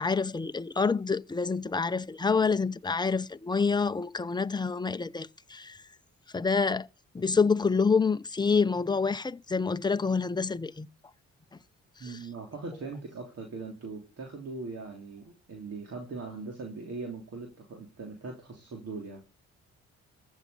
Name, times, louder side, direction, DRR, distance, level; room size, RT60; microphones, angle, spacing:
voice 1, 0.0-5.8 6.3-6.9 7.1-10.9 12.0-12.2, left 5 dB, 15° left, 0.7 m, -27 dB
voice 2, 12.0-19.2, right 3 dB, 55° right, 3.5 m, -40 dB
14.5 x 7.4 x 7.0 m
cardioid pair, 90°, 30 cm